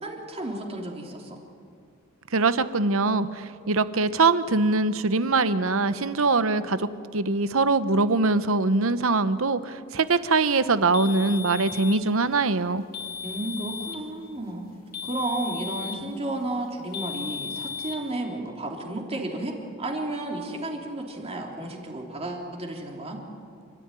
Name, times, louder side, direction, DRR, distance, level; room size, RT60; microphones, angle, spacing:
voice 1, 0.0-1.4 13.2-14.6 15.0-23.2, right 1 dB, 30° right, 0 dB, 3.4 m, -32 dB
voice 2, 2.3-12.8, right 3 dB, 70° right, 13 dB, 0.9 m, -23 dB
sound 1, 10.9-12.1 12.9-14.1 14.9-16.1 16.9-18.1, left 6 dB, 45° left, 2.6 m, -35 dB
29.0 x 13.5 x 9.8 m, 2.4 s
head